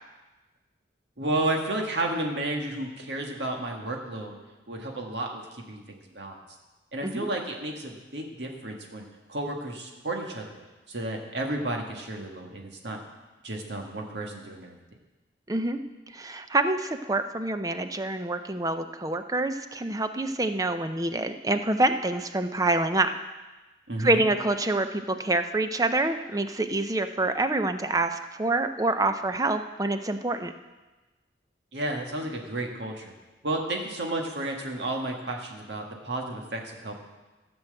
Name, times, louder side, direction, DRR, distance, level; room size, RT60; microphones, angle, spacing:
voice 1, 1.2-4.3 4.7-6.4 6.9-9.0 9.3-10.5 10.9-13.0 13.4-14.8 23.9-24.2 31.7-33.1 33.4-37.0, right 2 dB, 70° right, 2 dB, 1.7 m, -32 dB
voice 2, 15.5-15.8 16.1-23.1 24.0-30.5, right 2 dB, 20° right, 9 dB, 0.6 m, -26 dB
14.5 x 6.2 x 7.8 m, 1.2 s
head